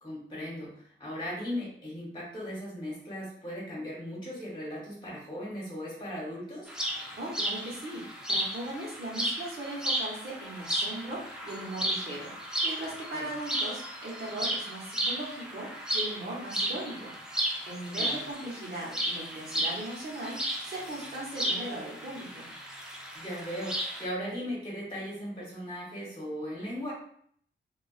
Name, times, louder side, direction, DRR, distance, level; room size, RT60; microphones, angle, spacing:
voice 1, 0.0-6.7 13.1-13.3 18.0-18.2 23.1-26.9, equal, 20° left, -5 dB, 1.0 m, -38 dB
sound 1, 6.7-24.1, right 1 dB, 5° right, 0.4 m, -34 dB
voice 2, 7.1-22.5, right 1 dB, 55° right, -4 dB, 0.9 m, -39 dB
2.3 x 2.3 x 2.3 m, 0.62 s
wide cardioid pair, 130°, 21 cm